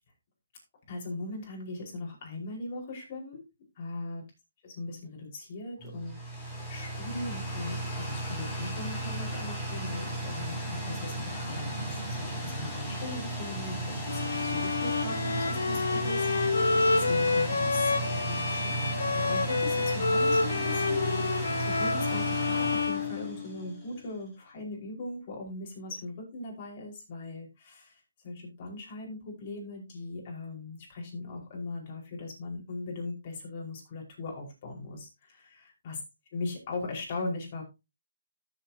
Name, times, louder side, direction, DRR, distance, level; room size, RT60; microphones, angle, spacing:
voice 1, 0.9-3.4 3.8-4.2 4.6-36.0 36.3-37.6, left 2 dB, 40° left, -1 dB, 5.0 m, -39 dB
sound 1, 5.8-23.9, right 1 dB, 5° left, 5.5 m, -35 dB
Bowed string instrument, 14.1-23.8, left 3 dB, 85° left, 1.6 m, -28 dB
14.0 x 7.4 x 2.9 m, 0.25 s
hypercardioid pair, 150°, 0 cm